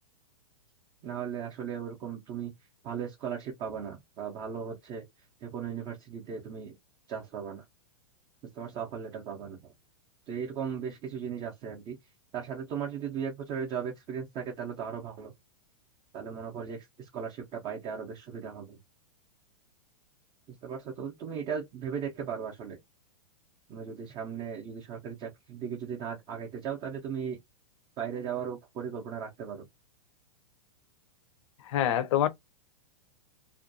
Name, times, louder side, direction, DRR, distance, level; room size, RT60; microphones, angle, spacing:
voice 1, 1.0-2.5 2.8-5.0 5.4-6.8 7.1-7.6 8.5-9.7 10.3-12.0 12.3-15.3 16.1-18.8 20.5-22.8 23.7-27.4 28.0-29.7, right 7 dB, 25° right, 0.5 m, -37 dB
voice 2, 31.6-32.3, left 11 dB, 55° left, 0.5 m, -25 dB
2.5 x 2.2 x 2.5 m
hypercardioid pair, 150°, 18 cm